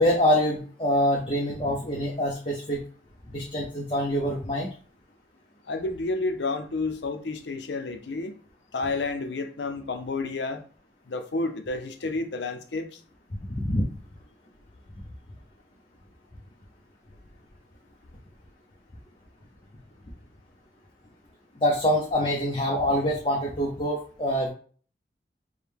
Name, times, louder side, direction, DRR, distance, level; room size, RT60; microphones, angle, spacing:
voice 1, 0.0-2.8 3.3-4.7 13.5-13.8 21.6-24.5, equal, 30° left, 0.6 m, -25 dB
voice 2, 5.7-8.4 8.7-10.6 11.1-13.0, left 3 dB, 85° left, 0.6 m, -30 dB
4.8 x 2.2 x 3.4 m
head